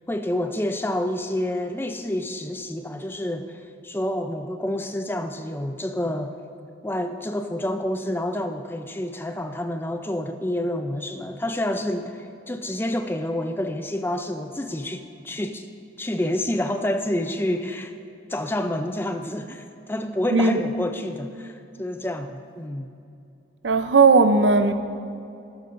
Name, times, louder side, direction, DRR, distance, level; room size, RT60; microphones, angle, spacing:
voice 1, 0.1-6.3 6.8-15.7 16.0-17.9 18.3-22.9, left 1 dB, 10° left, 7 dB, 0.4 m, -28 dB
voice 2, 23.6-24.7, right 4 dB, 75° right, 9 dB, 0.6 m, -17 dB
14.5 x 13.0 x 2.6 m, 2.6 s
head